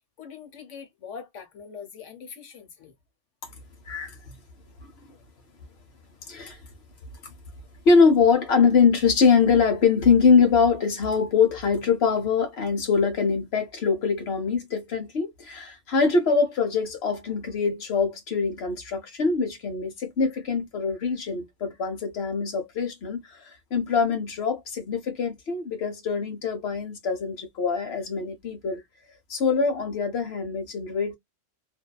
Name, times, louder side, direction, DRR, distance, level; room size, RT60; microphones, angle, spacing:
voice 1, 0.2-2.9 5.1-5.2 6.2-6.3, left 6 dB, 80° left, 1.2 m, -43 dB
voice 2, 3.9-4.4 4.8-5.1 6.3-6.6 7.2-7.3 7.8-28.8 29.3-31.1, left 5 dB, 60° left, 1.0 m, -23 dB
2.6 x 2.2 x 2.2 m
omnidirectional pair, 1.2 m